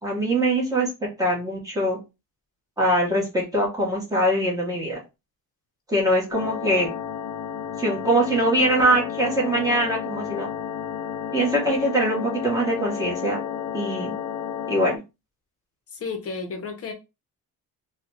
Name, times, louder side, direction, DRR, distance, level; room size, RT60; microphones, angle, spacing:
voice 1, 0.0-2.0 2.8-5.0 5.9-6.9 7.8-10.5 11.3-13.4 13.7-14.1 14.7-15.0, right 1 dB, 10° right, 1.3 m, -23 dB
sound 1, 6.3-15.0, left 9 dB, 70° left, 0.5 m, -32 dB
voice 2, 16.0-16.9, left 4 dB, 40° left, 0.8 m, -32 dB
3.6 x 2.3 x 2.9 m
cardioid pair, 160°, 37 cm